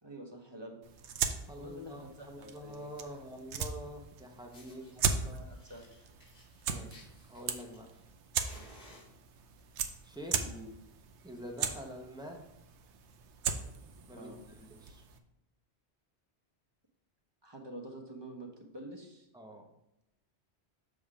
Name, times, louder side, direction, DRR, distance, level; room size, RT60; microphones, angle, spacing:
voice 1, 0.0-0.8 1.6-3.2 4.7-6.1 10.4-10.7 14.1-14.4 17.4-19.3, right 1 dB, 25° right, 2 dB, 0.9 m, -48 dB
sound 1, 0.8-15.2, right 6 dB, 90° right, 0.9 m, -39 dB
voice 2, 1.5-5.6 6.7-7.9 10.0-10.4 11.2-12.4 14.1-15.0 19.3-19.7, equal, 5° right, 2 dB, 0.7 m, -46 dB
Fire, 4.0-4.1 4.5-4.9 5.5-8.1 8.4-9.6 10.4-10.7 11.0-11.1 11.5-11.6 11.8-12.1 12.6-12.7 13.6-13.7, left 1 dB, 45° left, 1.7 m, -58 dB
6.9 x 3.7 x 4.9 m, 0.84 s
omnidirectional pair, 1.1 m